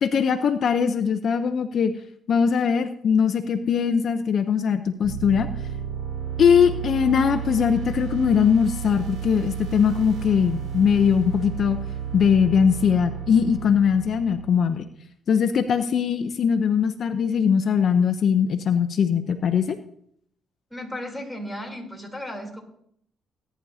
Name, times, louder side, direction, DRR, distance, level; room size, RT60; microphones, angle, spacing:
voice 1, 0.0-1.9 2.3-5.5 6.4-11.8 12.1-14.9 15.3-19.8, left 7 dB, 60° left, 9 dB, 0.7 m, -21 dB
sound 1, 5.0-14.9, right 8 dB, 85° right, 3.1 m, -32 dB
voice 2, 20.7-22.6, left 1 dB, ahead, 0 dB, 3.4 m, -35 dB
19.0 x 10.0 x 2.8 m, 0.70 s
cardioid pair, 90°, 0 cm